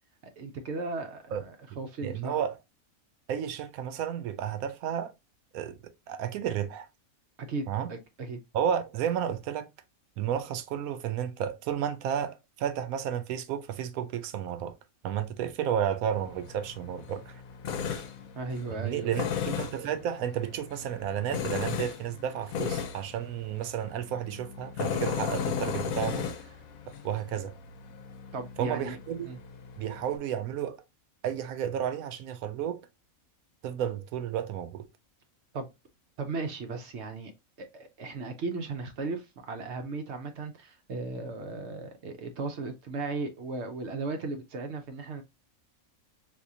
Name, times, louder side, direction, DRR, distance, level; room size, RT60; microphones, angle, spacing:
voice 1, 0.4-2.4 7.5-8.4 18.4-19.3 28.3-29.0 29.2-29.4 35.5-35.7 36.2-37.3 37.6-45.2, right 3 dB, 65° right, 0.8 m, -36 dB
voice 2, 2.0-2.6 3.3-5.1 5.5-6.9 7.7-7.9 8.5-9.7 10.2-14.7 15.0-17.4 18.7-26.5 26.9-27.5 28.6-29.3 29.8-30.8 31.2-32.8 33.6-34.9, right 9 dB, 85° right, 1.0 m, -32 dB
Tools, 16.1-30.2, left 7 dB, 85° left, 1.1 m, -36 dB
3.6 x 2.7 x 2.7 m
omnidirectional pair, 1.5 m